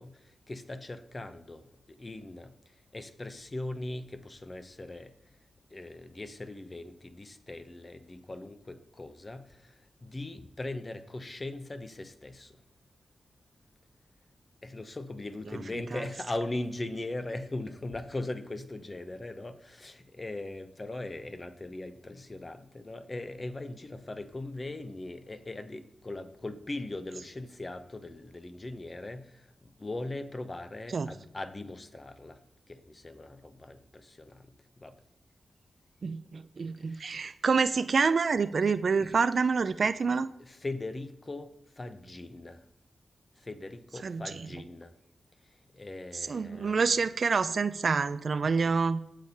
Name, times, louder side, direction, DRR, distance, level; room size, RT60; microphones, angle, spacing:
voice 1, 0.0-5.1 5.7-12.6 14.6-32.4 32.7-35.0 36.8-37.1 39.0-39.2 39.8-42.6 43.4-45.0 45.4-47.0 48.4-48.5, left 2 dB, 30° left, 10 dB, 0.8 m, -40 dB
voice 2, 36.0-40.3 44.0-44.2 46.3-49.0, right 5 dB, 60° right, 12 dB, 0.4 m, -27 dB
8.1 x 6.5 x 5.5 m, 0.77 s
cardioid pair, 70°, 0 cm